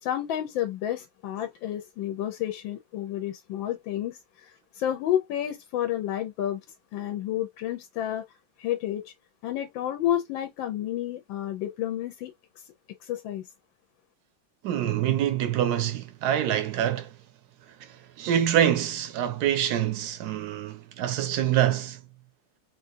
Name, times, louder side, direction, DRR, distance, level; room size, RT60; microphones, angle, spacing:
voice 1, 0.0-6.6 6.9-8.2 8.6-9.1 9.4-12.3 13.0-13.4, left 11 dB, 85° left, 1.4 m, -30 dB
voice 2, 14.6-17.1 17.8-22.0, right 10 dB, 70° right, 0.9 m, -26 dB
4.0 x 2.3 x 2.6 m
omnidirectional pair, 2.1 m